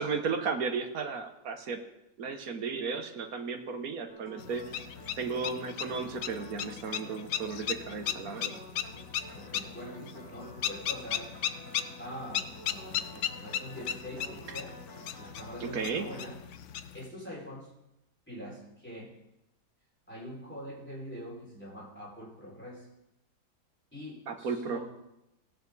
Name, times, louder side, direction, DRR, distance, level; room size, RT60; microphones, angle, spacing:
voice 1, 0.0-1.8 2.2-4.6 5.2-8.6 15.6-16.1 24.3-24.8, right 5 dB, 60° right, 5 dB, 1.5 m, -34 dB
sound 1, 4.1-16.3, equal, 45° left, 4.8 m, -50 dB
sound 2, 4.4-17.1, left 9 dB, 70° left, 0.7 m, -37 dB
voice 2, 9.3-11.3 12.0-14.8 15.2-16.4 16.9-17.7 18.3-19.1 20.1-22.9 23.9-24.8, equal, 5° left, -7 dB, 5.5 m, -44 dB
17.0 x 8.4 x 4.1 m, 0.91 s
omnidirectional pair, 1.8 m